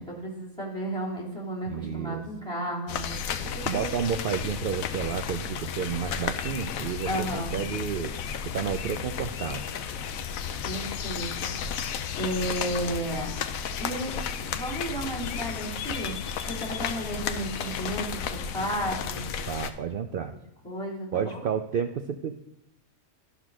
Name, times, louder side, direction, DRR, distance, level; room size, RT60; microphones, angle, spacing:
voice 1, 0.0-3.9 7.1-7.6 10.6-11.5 12.2-13.3 13.8-14.1 14.4-16.2 16.5-19.3 20.6-21.4, right 1 dB, 5° left, -2 dB, 2.7 m, -33 dB
voice 2, 1.7-2.2 3.6-8.1 8.5-9.6 19.5-20.4 21.1-22.5, right 7 dB, 85° right, 7 dB, 0.4 m, -31 dB
sound 1, 2.9-19.7, left 7 dB, 75° left, 1.1 m, -33 dB
12.0 x 4.0 x 6.1 m, 0.87 s
omnidirectional pair, 1.5 m